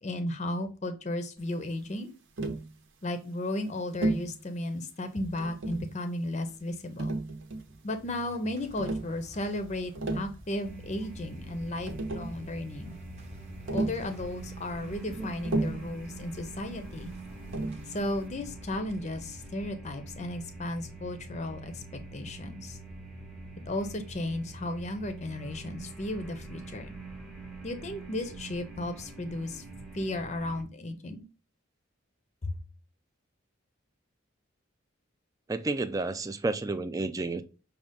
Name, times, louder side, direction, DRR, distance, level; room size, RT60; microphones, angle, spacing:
voice 1, 0.0-2.1 3.0-7.2 7.8-12.9 13.7-17.1 17.9-22.8 23.7-26.9 27.6-29.6 29.9-31.2 32.4-32.6, left 1 dB, 35° left, 0.6 m, -34 dB
Tap, 2.4-2.7 4.0-4.3 5.4-5.9 7.0-7.8 8.8-9.1 9.8-10.3 11.5-11.6 11.8-12.4 13.7-14.1 15.4-15.9 17.5-17.9, right 2 dB, 65° right, 0.9 m, -32 dB
sound 1, 7.7-22.3, equal, 30° right, 0.8 m, -51 dB
sound 2, 10.6-30.6, right 2 dB, ahead, 0.8 m, -45 dB
voice 2, 35.5-37.4, right 3 dB, 15° right, 0.4 m, -31 dB
6.3 x 2.4 x 3.5 m
head